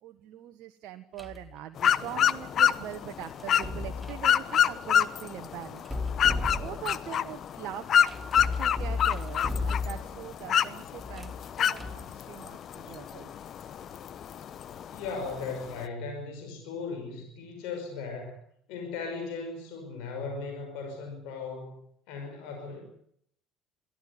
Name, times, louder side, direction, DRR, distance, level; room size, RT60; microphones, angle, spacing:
voice 1, 0.0-5.8 6.5-7.9 8.6-13.3, right 12 dB, 60° right, 6 dB, 1.3 m, -42 dB
sound 1, 1.2-1.5 3.4-4.3 5.8-7.1 8.1-10.3 11.0-12.1, left 3 dB, 10° right, 2.5 m, -34 dB
sound 2, 1.8-15.9, left 9 dB, 50° left, 1.0 m, -28 dB
voice 2, 14.8-18.4 18.7-21.8 22.1-22.9, left 4 dB, 70° left, 3 dB, 5.6 m, -37 dB
23.5 x 15.0 x 9.6 m, 0.69 s
hypercardioid pair, 65°, 0 cm